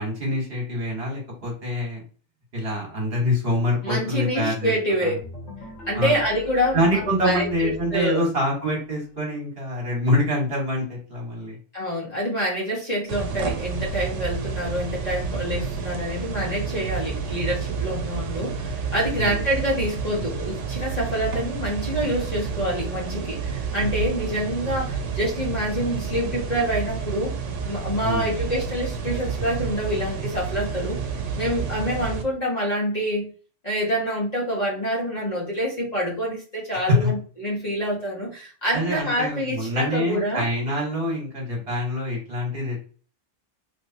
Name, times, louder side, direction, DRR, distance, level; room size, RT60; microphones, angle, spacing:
voice 1, 0.0-2.0 2.5-4.7 5.0-5.1 5.9-6.2 6.7-11.6 19.2-19.4 28.0-28.3 36.7-37.1 38.7-42.8, left 1 dB, 55° right, -2 dB, 1.5 m, -25 dB
voice 2, 3.8-5.2 5.9-8.2 11.7-27.3 27.7-31.0 31.4-33.3 33.6-40.5 41.6-41.7, equal, 35° left, -4 dB, 1.3 m, -26 dB
sound 1, 5.2-8.9, equal, 75° left, 1.7 m, -42 dB
sound 2, 13.1-32.2, right 5 dB, 85° right, 1.0 m, -30 dB
3.2 x 3.1 x 2.7 m, 0.39 s
omnidirectional pair, 1.2 m